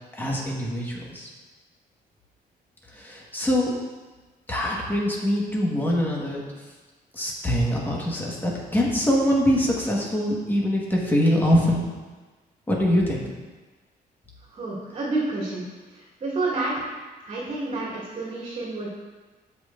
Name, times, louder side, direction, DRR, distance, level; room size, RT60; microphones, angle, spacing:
voice 1, 0.1-1.3 2.9-3.7 4.5-6.4 7.1-11.8 12.7-13.3, equal, 10° left, -3 dB, 1.5 m, -23 dB
voice 2, 14.5-15.7 16.2-16.8 17.2-18.9, right 2 dB, 40° right, -7 dB, 2.3 m, -29 dB
14.5 x 5.5 x 2.6 m, 1.3 s
cardioid pair, 160°, 16 cm